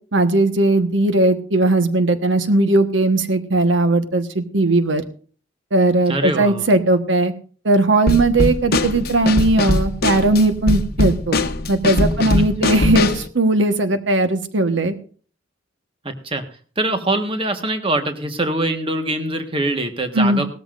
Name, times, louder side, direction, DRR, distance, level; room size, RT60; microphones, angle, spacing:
voice 1, 0.1-5.0 5.7-7.3 7.6-11.4 11.7-14.9 20.1-20.4, right 2 dB, 85° right, 8 dB, 1.3 m, -18 dB
voice 2, 6.1-6.7 12.6-12.7 16.0-16.4 16.8-20.5, right 2 dB, 30° right, 6 dB, 1.5 m, -23 dB
Drum kit / Snare drum, 8.1-13.3, left 2 dB, 55° left, 1.0 m, -21 dB
18.5 x 13.5 x 2.6 m, 0.40 s
head